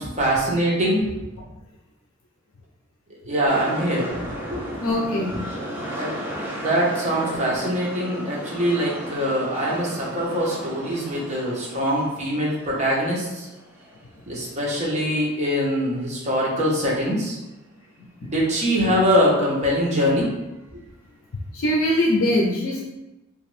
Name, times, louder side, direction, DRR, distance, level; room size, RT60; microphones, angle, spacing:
voice 1, 0.2-1.1 3.3-4.6 6.0-6.1 6.6-13.5 14.3-17.4 18.2-20.3 20.7-20.8, equal, 35° right, -4 dB, 0.9 m, -23 dB
sound 1, 3.5-15.5 15.8-15.9, equal, 10° right, 0.6 m, -35 dB
voice 2, 4.8-5.3 21.5-22.8, left 1 dB, 75° left, -2 dB, 0.5 m, -21 dB
2.9 x 2.5 x 3.1 m, 1.0 s
head